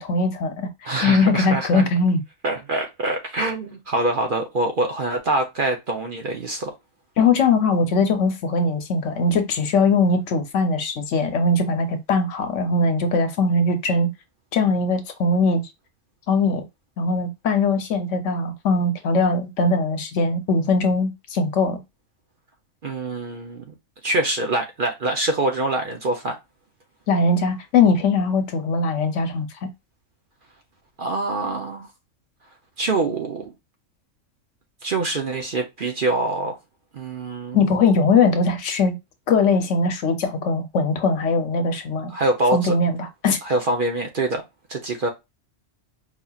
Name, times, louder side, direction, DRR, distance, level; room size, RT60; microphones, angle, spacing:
voice 1, 0.0-0.7 1.0-2.2 7.2-14.1 14.5-15.6 16.3-16.6 17.0-21.8 27.1-29.7 37.5-38.9 39.3-42.1 42.5-43.4, left 3 dB, 70° left, 1.1 m, -20 dB
voice 2, 0.8-1.9 2.4-6.7 22.8-23.7 24.0-26.4 31.0-31.9 32.8-33.5 34.8-36.6 36.9-37.6 42.1-42.7 43.4-44.4 44.7-45.1, right 2 dB, 50° right, 0.7 m, -24 dB
4.9 x 2.8 x 2.3 m
omnidirectional pair, 1.3 m